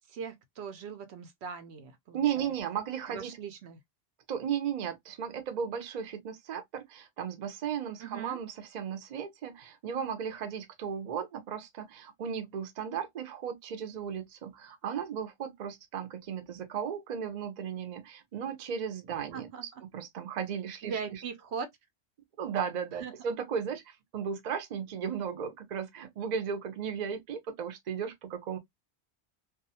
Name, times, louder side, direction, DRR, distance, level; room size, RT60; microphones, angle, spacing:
voice 1, 0.1-2.5 3.1-3.8 8.0-8.4 19.3-19.7 20.8-21.7 23.0-23.3, right 6 dB, 80° right, 0.9 m, -40 dB
voice 2, 2.1-3.4 4.3-21.2 22.4-28.6, right 7 dB, 50° right, 0.6 m, -35 dB
2.4 x 2.3 x 2.7 m
omnidirectional pair, 1.1 m